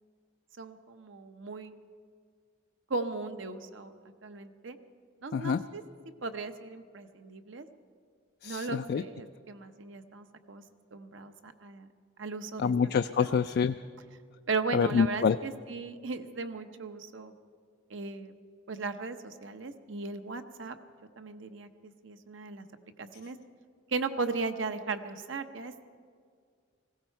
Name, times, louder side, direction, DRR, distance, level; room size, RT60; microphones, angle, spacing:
voice 1, 0.6-1.8 2.9-3.9 4.2-4.8 5.2-5.8 6.2-7.7 8.4-10.6 10.9-11.9 12.2-12.7 13.2-13.3 14.5-17.3 17.9-18.3 18.7-20.7 21.2-21.7 22.0-22.7 23.0-23.4 23.9-25.9, right 4 dB, 75° right, 8 dB, 0.9 m, -37 dB
voice 2, 8.4-9.0 12.6-13.7 14.7-15.4, left 6 dB, 55° left, 10 dB, 0.3 m, -26 dB
19.0 x 16.0 x 4.5 m, 2.1 s
head